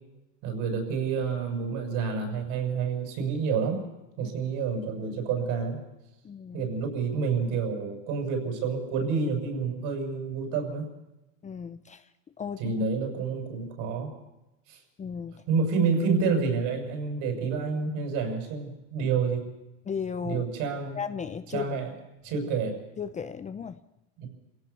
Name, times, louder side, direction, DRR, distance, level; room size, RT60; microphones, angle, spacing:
voice 1, 0.4-3.8 4.2-5.8 6.5-10.9 12.6-14.1 14.7-14.8 15.5-19.5 20.2-21.0 21.5-21.9 22.2-22.8 24.2-24.3, right 5 dB, 60° right, 5 dB, 6.8 m, -28 dB
voice 2, 6.2-6.7 11.4-12.0 12.4-12.6 15.0-15.4 19.9-20.4 20.9-21.8 23.0-23.8, left 6 dB, 20° left, 11 dB, 0.7 m, -35 dB
28.0 x 16.5 x 7.0 m, 0.98 s
supercardioid pair, 125°, 37 cm